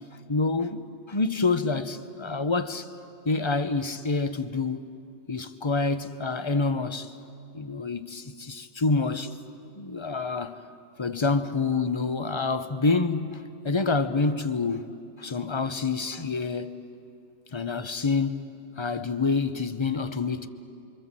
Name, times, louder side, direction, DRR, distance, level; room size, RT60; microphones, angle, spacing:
voice 1, 0.3-0.8 1.1-2.9 3.2-4.9 5.3-7.1 7.5-9.3 9.8-10.6 11.0-14.9 15.2-16.8 17.5-18.4 18.8-20.5, left 3 dB, 25° left, 0.8 m, -27 dB
29.0 x 24.5 x 7.5 m
omnidirectional pair, 1.3 m